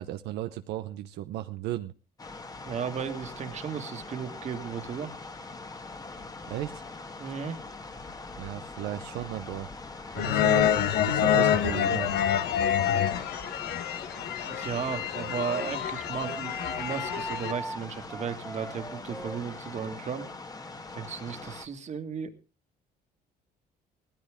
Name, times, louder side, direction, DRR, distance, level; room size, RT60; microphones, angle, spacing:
voice 1, 0.0-1.9 6.5-6.8 8.4-9.7 10.1-12.2, right 14 dB, 85° right, 8 dB, 0.8 m, -35 dB
sound 1, 2.2-21.7, left 3 dB, 20° left, 1.6 m, -42 dB
voice 2, 2.6-5.1 7.2-7.6 14.5-20.3 20.9-22.3, right 7 dB, 45° right, 7 dB, 1.9 m, -35 dB
sound 2, 10.2-17.5, left 10 dB, 75° left, 1.3 m, -27 dB
Wind instrument woodwind instrument, 14.7-20.0, right 1 dB, 5° left, 1.5 m, -41 dB
17.5 x 14.0 x 3.6 m, 0.32 s
cardioid pair, 110°, 17 cm